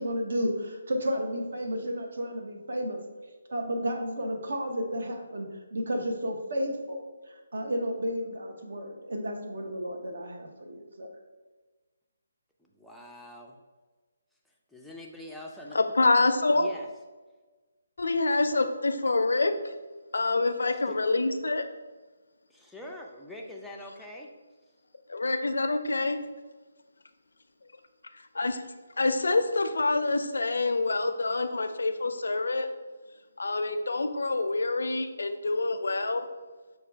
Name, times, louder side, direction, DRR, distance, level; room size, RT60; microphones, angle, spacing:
voice 1, 0.0-3.0 3.5-11.1, equal, 65° right, 3 dB, 0.7 m, -32 dB
voice 2, 12.6-13.6 14.7-15.8 16.5-16.9 20.7-21.0 22.5-24.3, left 1 dB, ahead, -2 dB, 0.3 m, -44 dB
voice 3, 15.7-16.7 18.0-19.7 20.1-21.7 25.1-26.2 28.3-28.6 29.0-32.7 33.4-36.3, left 3 dB, 85° left, 7 dB, 0.4 m, -26 dB
5.7 x 2.2 x 3.3 m, 1.3 s
hypercardioid pair, 165°, 0 cm